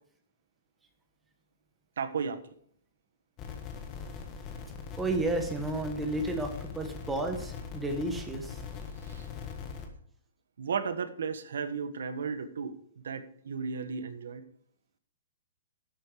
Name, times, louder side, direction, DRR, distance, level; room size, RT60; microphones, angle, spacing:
voice 1, 2.0-2.4 9.0-9.3 10.6-14.4, right 5 dB, 85° right, 11 dB, 1.3 m, -34 dB
sound 1, 3.4-9.9, left 6 dB, 25° left, 1.4 m, -41 dB
voice 2, 5.0-8.6, right 2 dB, 5° right, 5 dB, 1.3 m, -32 dB
11.5 x 7.9 x 4.9 m, 0.63 s
hypercardioid pair, 165°, 0 cm